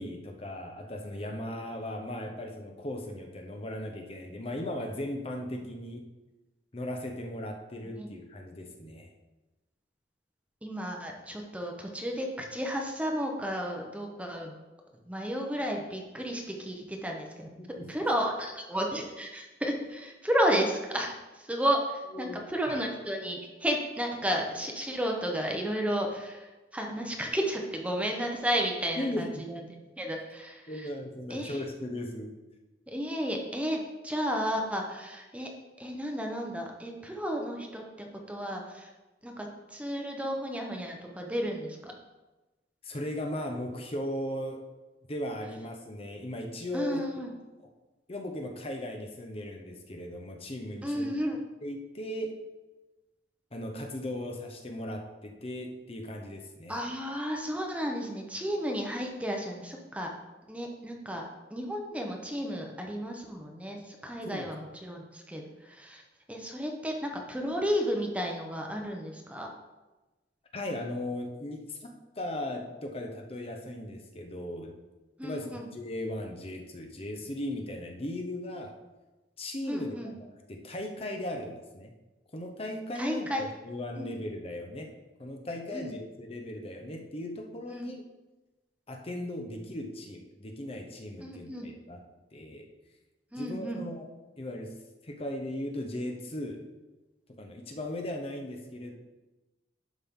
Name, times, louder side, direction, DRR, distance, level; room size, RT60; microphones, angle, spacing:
voice 1, 0.0-6.1 6.7-9.1 17.6-17.9 22.1-22.8 29.0-29.5 30.7-32.3 42.8-44.6 45.1-47.0 48.1-51.1 51.6-52.4 53.5-56.8 64.2-64.5 70.5-74.8 75.2-78.8 79.4-81.9 82.3-84.9 85.2-88.0 88.9-92.0 92.3-92.7 93.4-94.1 94.4-94.7 95.0-96.6 97.3-98.9, left 1 dB, 35° left, 3 dB, 0.9 m, -37 dB
voice 2, 10.6-14.6 15.1-17.5 17.9-29.6 30.0-30.9 31.3-31.6 32.9-35.5 35.8-38.9 39.2-41.9 46.7-47.3 50.8-51.4 56.7-60.1 60.5-61.2 61.5-66.0 66.3-69.5 75.2-75.7 79.7-80.1 83.0-83.5 83.9-84.2 85.7-85.9 87.7-87.9 91.2-91.7 93.3-93.8, equal, 10° right, 1 dB, 0.9 m, -33 dB
11.5 x 5.5 x 3.7 m, 1.1 s
head